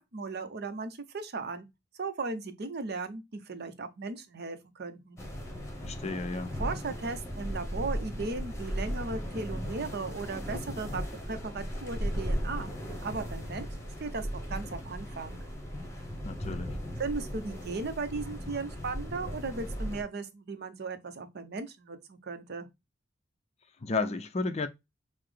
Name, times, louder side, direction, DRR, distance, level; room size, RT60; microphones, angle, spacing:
voice 1, 0.0-1.7 2.0-5.2 6.6-12.7 13.0-13.7 14.0-15.4 17.0-22.7, right 3 dB, 55° right, 0.7 m, -37 dB
sound 1, 5.2-20.0, equal, 15° left, 1.0 m, -37 dB
voice 2, 5.8-6.6 16.2-16.8 23.8-24.7, left 3 dB, 35° left, 0.4 m, -32 dB
5.6 x 2.0 x 3.3 m
head